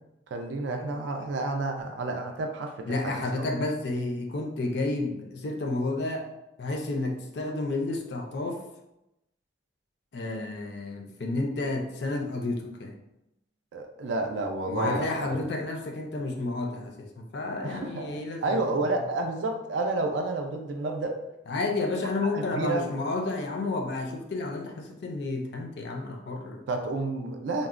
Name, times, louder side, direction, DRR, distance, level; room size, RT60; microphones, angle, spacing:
voice 1, 0.3-3.5 13.7-15.5 17.6-21.2 22.3-22.8 26.7-27.7, right 2 dB, 70° right, 4 dB, 0.3 m, -30 dB
voice 2, 2.9-6.3 6.6-8.6 10.1-13.0 14.7-18.6 21.5-26.6, left 2 dB, 60° left, 3 dB, 0.4 m, -31 dB
3.8 x 2.0 x 2.4 m, 0.89 s
head